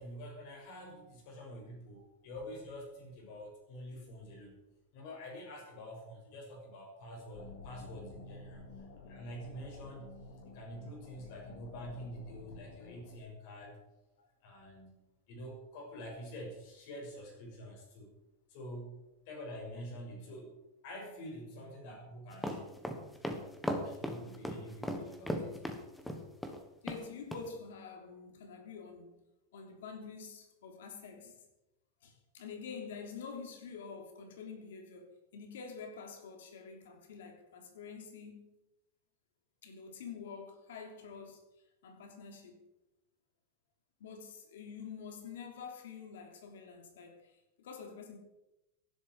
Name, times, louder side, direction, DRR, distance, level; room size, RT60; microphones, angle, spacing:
voice 1, 0.0-4.6 4.9-10.1 10.5-13.8 14.4-18.1 18.5-19.0 19.2-20.5 20.8-22.8 23.8-25.7, equal, 45° left, 6.5 m, -47 dB
sound 1, 7.3-13.2, left 3 dB, 75° left, 3.2 m, -51 dB
sound 2, 22.3-26.6 26.9-27.0 27.3-27.4, equal, 5° left, 1.2 m, -36 dB
voice 2, 26.8-29.2 29.5-31.4 32.0-38.5 39.6-41.4 41.8-42.6 44.0-48.2, left 5 dB, 90° left, 3.3 m, -47 dB
17.0 x 11.5 x 4.8 m
supercardioid pair, 175°, 0 cm